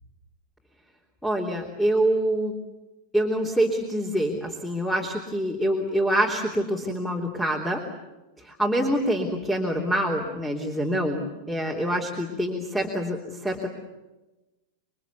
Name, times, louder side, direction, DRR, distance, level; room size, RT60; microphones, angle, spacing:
voice 1, 1.2-2.5 3.1-7.8 8.4-13.7, right 1 dB, 5° left, 0 dB, 3.3 m, -26 dB
27.5 x 23.5 x 8.2 m, 1.1 s
figure-of-eight pair, 90°, 0 cm